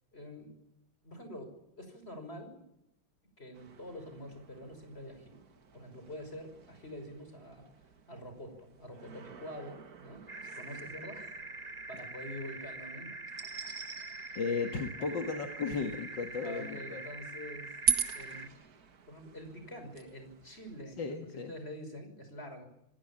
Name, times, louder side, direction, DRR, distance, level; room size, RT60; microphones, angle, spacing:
voice 1, 0.1-0.6 1.0-2.6 3.4-5.4 5.7-7.7 8.1-10.3 10.5-11.4 11.9-13.1 16.4-17.8 18.1-18.5 19.1-22.6, equal, 30° left, 7 dB, 6.1 m, -46 dB
sound 1, 3.5-20.8, right 6 dB, 50° right, 2.0 m, -42 dB
sound 2, 10.3-18.5, right 3 dB, 25° right, 1.2 m, -44 dB
voice 2, 14.4-17.0 21.0-21.5, left 5 dB, 65° left, 4 dB, 2.5 m, -35 dB
27.5 x 16.5 x 8.9 m, 0.81 s
omnidirectional pair, 2.2 m